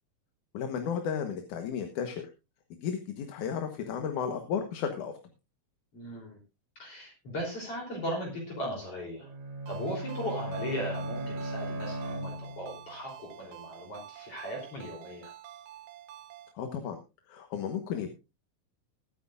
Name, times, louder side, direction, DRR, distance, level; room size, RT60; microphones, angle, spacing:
voice 1, 0.5-2.2 2.8-5.1 16.5-17.0 17.3-18.1, left 7 dB, 70° left, 6 dB, 2.7 m, -33 dB
voice 2, 5.9-6.4 6.8-9.3 9.7-15.3, equal, 45° left, -1 dB, 4.5 m, -37 dB
Bowed string instrument, 9.2-12.8, right 1 dB, 60° right, 3.9 m, -37 dB
Ringtone, 9.7-16.5, right 12 dB, 80° right, 2.7 m, -49 dB
21.0 x 9.6 x 2.5 m, 0.28 s
omnidirectional pair, 3.8 m